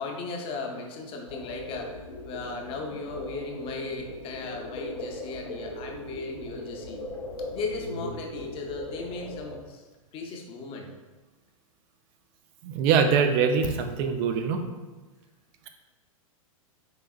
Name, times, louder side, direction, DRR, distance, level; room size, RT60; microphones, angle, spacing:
voice 1, 0.0-2.0 2.2-7.0 7.5-9.8 10.1-10.9, left 3 dB, 30° left, 2 dB, 0.7 m, -36 dB
sound 1, 1.3-9.6, left 1 dB, 85° left, 0.8 m, -39 dB
voice 2, 12.6-14.6, right 6 dB, 40° right, 7 dB, 0.5 m, -23 dB
4.8 x 3.3 x 2.3 m, 1.2 s
hypercardioid pair, 110°, 18 cm